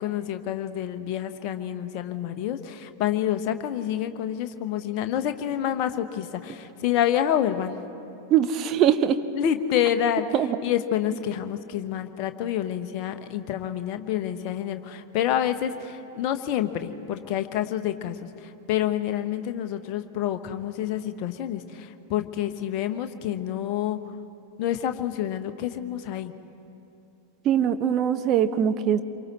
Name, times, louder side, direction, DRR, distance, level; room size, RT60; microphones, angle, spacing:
voice 1, 0.0-7.8 9.4-10.3 10.6-24.1 24.6-26.3, left 10 dB, 45° left, 8 dB, 1.1 m, -28 dB
voice 2, 8.3-9.2 10.3-10.5 27.4-29.0, right 9 dB, 35° right, 9 dB, 1.0 m, -22 dB
27.0 x 24.0 x 4.2 m, 2.8 s
figure-of-eight pair, 90°, 0 cm